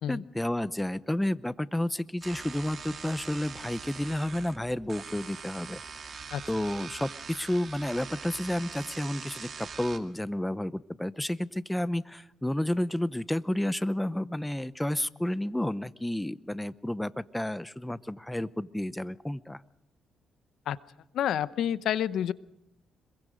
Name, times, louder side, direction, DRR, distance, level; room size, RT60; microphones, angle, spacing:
voice 1, 0.1-5.8 6.5-19.6, left 1 dB, 5° left, 16 dB, 0.8 m, -31 dB
sound 1, 2.2-10.0, right 6 dB, 45° right, 2.3 m, -43 dB
voice 2, 21.1-22.3, left 10 dB, 75° left, 16 dB, 0.8 m, -28 dB
26.0 x 22.5 x 5.1 m, 0.82 s
cardioid pair, 90°, 0 cm